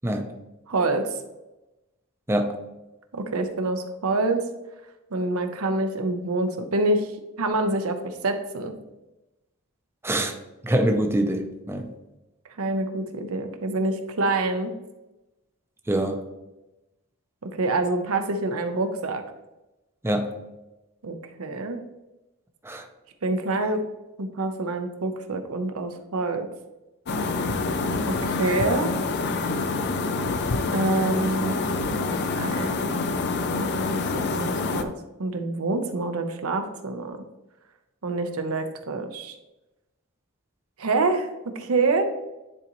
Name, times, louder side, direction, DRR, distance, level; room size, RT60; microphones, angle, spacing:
voice 1, 0.7-1.1 3.1-4.4 5.1-7.1 7.4-8.8 12.6-14.7 17.5-19.2 21.0-21.8 23.2-23.9 24.2-26.5 28.2-29.0 30.7-31.6 31.9-32.0 32.4-32.9 33.6-33.9 34.3-34.9 35.2-37.2 38.0-39.3 40.8-42.0, right 2 dB, 85° right, 6 dB, 0.8 m, -26 dB
voice 2, 2.3-2.6 10.0-10.4 10.6-11.9 15.9-16.2 20.0-20.4 22.6-22.9, right 1 dB, 10° right, 5 dB, 0.5 m, -25 dB
sound 1, 27.1-34.8, left 3 dB, 50° left, 0.5 m, -26 dB
9.9 x 4.0 x 3.0 m, 1.0 s
head